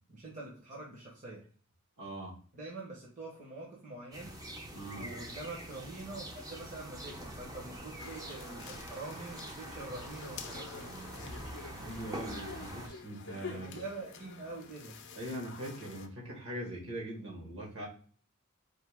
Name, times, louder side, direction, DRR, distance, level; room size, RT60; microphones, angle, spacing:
voice 1, 0.1-1.4 2.5-4.4 4.9-10.9 13.5-15.0, right 2 dB, 35° right, -4 dB, 1.0 m, -45 dB
voice 2, 2.0-2.3 4.7-5.1 11.8-13.8 15.2-17.9, right 1 dB, 60° right, -2 dB, 1.6 m, -41 dB
sound 1, 4.1-12.9, right 1 dB, 15° right, 0.6 m, -45 dB
sound 2, 8.0-16.1, left 5 dB, 55° left, 0.5 m, -48 dB
4.4 x 2.8 x 3.5 m, 0.43 s
head